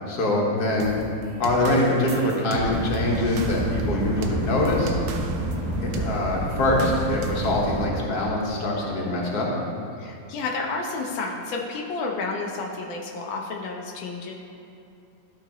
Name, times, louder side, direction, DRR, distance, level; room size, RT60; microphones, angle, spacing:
voice 1, 0.1-1.0 1.4-4.9 5.8-9.5, left 1 dB, 55° left, -3 dB, 1.7 m, -24 dB
sound 1, 0.8-5.6 5.9-6.2 6.8-7.5, right 5 dB, 80° right, 1.4 m, -36 dB
sound 2, 2.6-7.9, right 1 dB, 50° right, 1.5 m, -29 dB
voice 2, 10.0-14.3, left 3 dB, 90° left, 0 dB, 1.5 m, -31 dB
12.5 x 5.0 x 2.9 m, 2.7 s
omnidirectional pair, 2.1 m